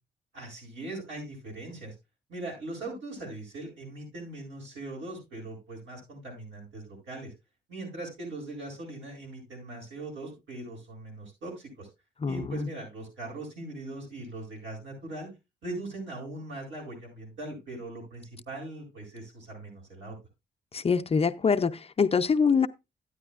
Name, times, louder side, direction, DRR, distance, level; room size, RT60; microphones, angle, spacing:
voice 1, 0.3-1.9 2.3-7.3 7.7-11.9 12.3-15.3 15.6-20.2, right 2 dB, 85° right, 7.8 m, -40 dB
voice 2, 12.2-12.7 20.7-22.7, left 5 dB, 30° left, 0.5 m, -24 dB
13.0 x 9.9 x 2.4 m
cardioid pair, 95°, 19 cm